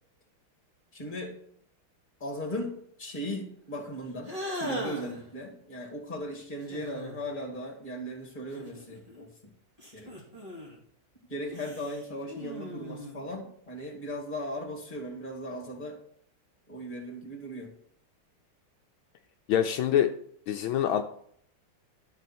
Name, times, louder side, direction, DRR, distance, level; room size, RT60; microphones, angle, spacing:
voice 1, 0.9-1.4 2.2-9.5 9.9-10.1 11.3-16.0 16.7-17.7, equal, 25° left, 1 dB, 2.5 m, -37 dB
sound 1, 4.2-5.2 6.6-7.3 8.5-9.3 9.8-10.8 11.5-13.3, left 1 dB, 15° right, 2.6 m, -39 dB
voice 2, 19.5-20.1 20.5-21.0, left 10 dB, 75° left, 6 dB, 1.4 m, -25 dB
12.5 x 6.3 x 4.4 m, 0.65 s
omnidirectional pair, 2.3 m